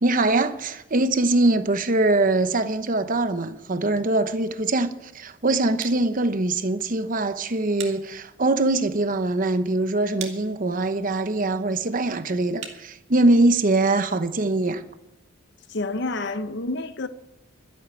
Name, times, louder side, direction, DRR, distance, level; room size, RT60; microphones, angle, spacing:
voice 1, 0.0-14.8, right 2 dB, 40° right, 0.9 m, -22 dB
sound 1, 3.8-13.5, right 7 dB, 60° right, 2.2 m, -46 dB
voice 2, 15.7-17.1, left 2 dB, 60° left, 0.9 m, -28 dB
12.5 x 11.5 x 9.1 m
head